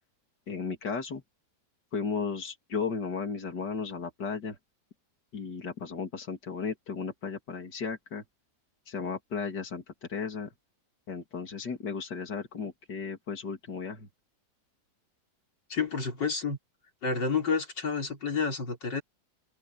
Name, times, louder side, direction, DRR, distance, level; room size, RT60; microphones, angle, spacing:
voice 1, 0.5-1.2 1.9-4.6 5.3-8.2 8.9-9.8 10.1-10.5 11.1-14.1, left 5 dB, 70° left, 3.3 m, -35 dB
voice 2, 15.7-16.6 17.0-19.0, left 5 dB, 90° left, 4.7 m, -29 dB
open air
omnidirectional pair, 1.9 m